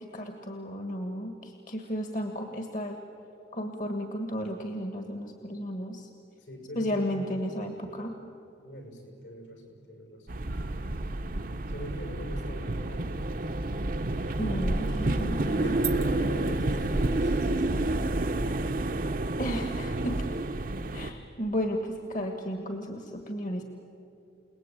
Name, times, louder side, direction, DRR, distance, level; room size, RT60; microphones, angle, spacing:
voice 1, 0.0-3.0 3.5-6.1 6.7-8.1 14.4-15.8 19.4-20.2 20.9-23.6, equal, 45° left, 5 dB, 1.6 m, -33 dB
voice 2, 6.4-7.4 8.6-10.3 11.7-13.5 15.4-18.1, equal, 80° left, 2 dB, 6.6 m, -41 dB
sound 1, 10.3-21.1, right 2 dB, 50° right, 0.8 m, -29 dB
29.5 x 19.0 x 9.1 m, 2.8 s
head